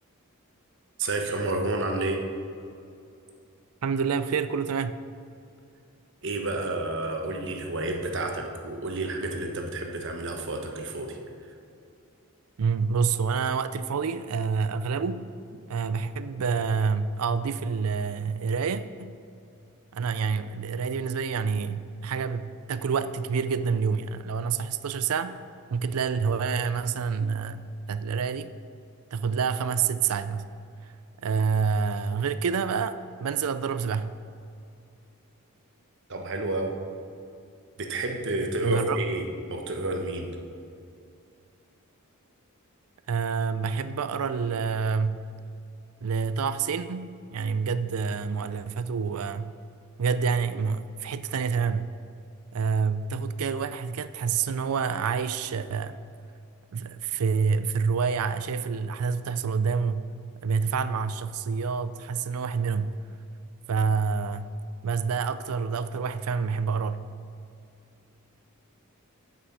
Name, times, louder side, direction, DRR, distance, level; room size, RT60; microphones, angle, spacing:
voice 1, 1.0-2.2 6.2-11.2 36.1-36.7 37.8-40.3, right 2 dB, 55° right, 3 dB, 1.1 m, -30 dB
voice 2, 3.8-5.0 12.6-15.3 15.7-19.1 19.9-25.4 25.7-28.5 29.1-30.5 31.2-34.1 38.6-39.0 43.1-45.2 46.0-49.5 50.0-51.9 52.5-56.0 56.7-60.1 60.4-62.9 63.7-64.6 64.8-67.0, right 5 dB, 75° right, 13 dB, 0.4 m, -28 dB
8.6 x 8.2 x 5.5 m, 2.5 s
head